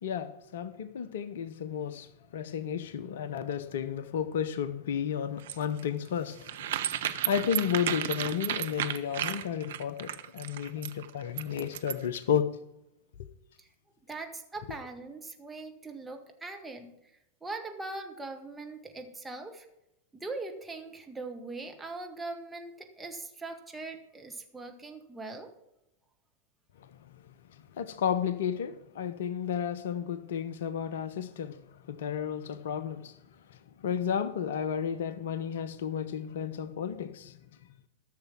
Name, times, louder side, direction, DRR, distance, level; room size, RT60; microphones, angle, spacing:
voice 1, 0.0-6.9 7.2-12.5 27.8-31.6 31.9-33.2 33.8-37.4, left 8 dB, 60° left, 0.7 m, -32 dB
sound 1, 5.4-12.2, right 11 dB, 60° right, 0.7 m, -33 dB
voice 2, 14.1-16.9 17.4-19.7 20.1-25.5, right 3 dB, 10° right, 1.6 m, -41 dB
14.0 x 6.7 x 6.0 m
figure-of-eight pair, 90°, 0 cm